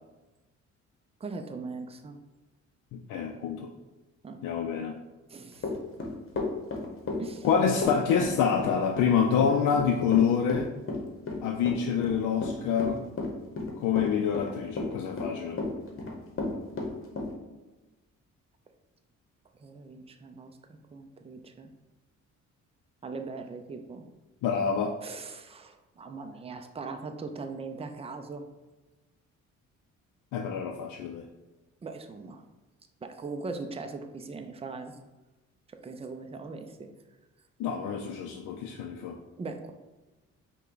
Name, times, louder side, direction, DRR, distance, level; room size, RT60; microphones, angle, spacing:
voice 1, 1.2-2.2 4.2-4.4 5.3-5.7 7.2-7.5 19.6-21.7 23.0-24.1 25.0-28.4 31.8-32.4 33.0-35.0 35.8-36.9 39.4-39.7, right 4 dB, 20° right, 6 dB, 0.5 m, -40 dB
voice 2, 2.9-3.7 4.4-4.9 7.4-10.7 11.4-13.0 13.8-15.6 24.4-24.9 30.3-31.2 37.6-39.2, left 7 dB, 80° left, 2 dB, 0.5 m, -27 dB
Run / Walk footsteps, 5.6-17.3, left 3 dB, 45° left, 1.0 m, -32 dB
5.5 x 2.3 x 3.9 m, 1.1 s
cardioid pair, 90°, 30 cm